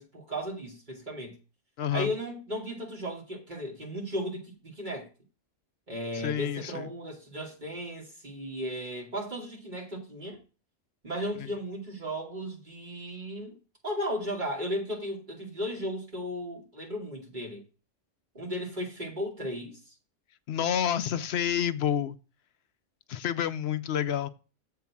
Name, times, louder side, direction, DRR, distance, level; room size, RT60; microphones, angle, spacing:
voice 1, 0.0-1.4 1.9-5.1 5.9-10.4 11.0-13.6 13.8-17.6 18.3-19.9, equal, 40° right, 2.8 m, -35 dB
voice 2, 1.8-2.1 6.1-6.9 11.4-11.5 20.5-22.2 23.1-24.3, left 9 dB, 65° left, 0.8 m, -29 dB
7.4 x 4.7 x 7.1 m
omnidirectional pair, 1.3 m